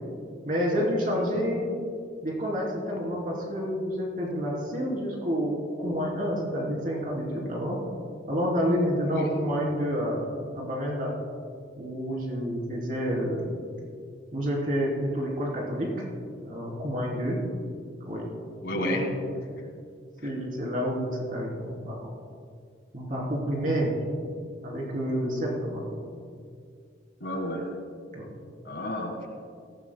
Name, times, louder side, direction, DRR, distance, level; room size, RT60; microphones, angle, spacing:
voice 1, 0.4-1.7 2.2-7.8 8.3-11.1 11.8-13.6 14.3-15.9 16.4-17.4 18.0-18.3 18.7-19.1 20.2-22.0 22.9-24.0 24.6-26.0 28.1-28.2, equal, 45° right, -3 dB, 3.4 m, -29 dB
voice 2, 1.1-1.5 9.0-9.3 18.6-19.1 20.2-20.4 27.2-27.7 28.6-29.3, equal, 60° left, 3 dB, 1.8 m, -32 dB
18.0 x 15.5 x 2.3 m, 2.2 s
head